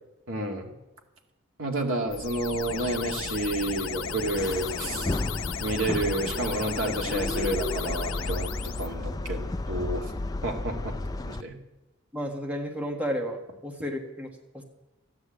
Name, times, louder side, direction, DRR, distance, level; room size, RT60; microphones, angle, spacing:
voice 1, 0.3-0.7 1.6-5.2 5.6-10.1 10.4-11.6, right 2 dB, 85° right, 2 dB, 2.3 m, -30 dB
sound 1, 2.1-8.9, left 6 dB, 85° left, 0.9 m, -35 dB
sound 2, 4.4-11.4, left 2 dB, 20° left, 0.4 m, -33 dB
voice 2, 12.1-14.3 14.5-14.6, equal, 5° right, 2 dB, 1.5 m, -32 dB
15.0 x 9.8 x 7.7 m, 1.0 s
head